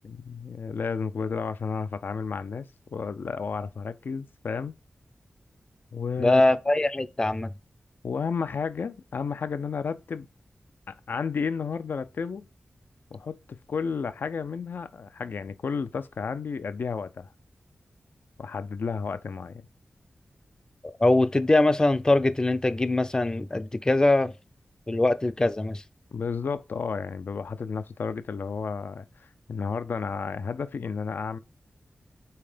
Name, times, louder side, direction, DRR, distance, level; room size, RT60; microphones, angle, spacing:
voice 1, 0.0-4.7 5.9-6.4 8.0-10.3 10.9-12.5 13.1-17.3 18.4-19.7 26.1-31.4, left 5 dB, 70° left, 0.5 m, -32 dB
voice 2, 6.2-7.5 20.8-24.3 24.9-25.8, left 2 dB, 20° left, 0.5 m, -22 dB
5.6 x 4.3 x 5.0 m
wide cardioid pair, 125°, 4 cm